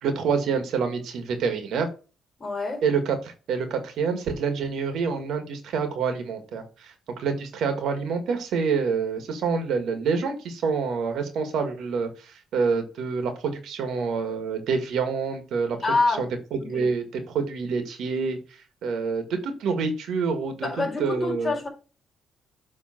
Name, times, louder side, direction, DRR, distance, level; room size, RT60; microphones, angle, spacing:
voice 1, 0.0-1.9 2.8-15.8 16.1-18.4 18.8-20.7 21.0-21.7, right 5 dB, 75° right, 1.9 m, -27 dB
voice 2, 2.4-2.8 15.8-16.3 16.6-16.9 20.6-21.7, left 3 dB, 30° left, 4.3 m, -26 dB
7.8 x 3.7 x 5.9 m
cardioid pair, 90°, 0 cm